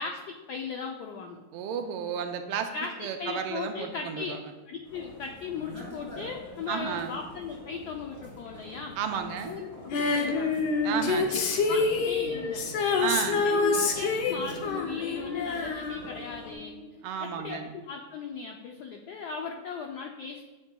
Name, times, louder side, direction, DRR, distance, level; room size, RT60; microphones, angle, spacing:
voice 1, 0.0-1.4 2.7-4.3 4.7-9.0 9.5-10.6 11.3-12.6 13.3-16.8 17.2-20.5, left 5 dB, 85° left, 2 dB, 0.8 m, -37 dB
voice 2, 1.5-2.7 3.0-4.4 6.7-7.2 9.0-9.6 10.8-11.4 11.7-11.8 13.0-13.4 17.0-17.7, right 7 dB, 85° right, 7 dB, 1.5 m, -32 dB
sound 1, 4.8-16.5, equal, 10° left, 2.1 m, -45 dB
Female singing, 9.9-16.5 16.8-16.9, left 4 dB, 65° left, 1.2 m, -27 dB
8.6 x 6.1 x 2.2 m, 1.1 s
omnidirectional pair, 2.3 m